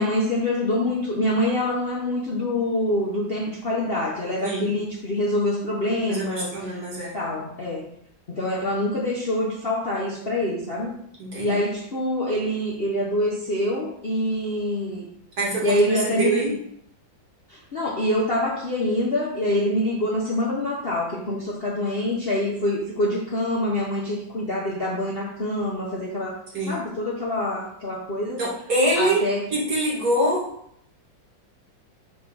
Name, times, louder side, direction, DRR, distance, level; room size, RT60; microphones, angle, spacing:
voice 1, 0.0-6.5 7.1-7.9 8.3-11.0 11.4-15.1 15.6-16.4 17.5-26.4 26.7-28.4 29.0-29.4, left 1 dB, 40° left, -5 dB, 0.8 m, -25 dB
voice 2, 6.1-7.1 11.2-11.6 15.4-16.5 26.5-26.8 28.4-29.2 29.5-30.5, right 1 dB, 55° right, -5 dB, 2.4 m, -24 dB
6.0 x 3.3 x 5.2 m, 0.70 s
omnidirectional pair, 2.1 m